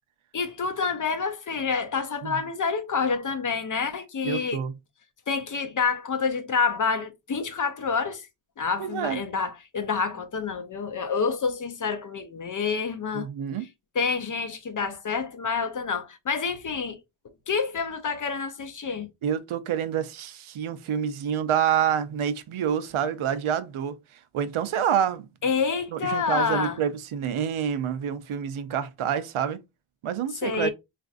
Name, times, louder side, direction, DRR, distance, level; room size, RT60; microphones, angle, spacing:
voice 1, 0.3-4.6 5.3-8.2 8.6-13.3 14.0-17.0 17.5-19.1 25.4-26.8 30.4-30.7, left 5 dB, 40° left, 0.5 m, -28 dB
voice 2, 4.2-4.7 8.8-9.2 13.1-13.7 19.2-23.9 24.3-25.3 25.9-29.6 30.0-30.7, right 8 dB, 75° right, 0.6 m, -27 dB
4.2 x 2.5 x 2.4 m
wide cardioid pair, 170°, 49 cm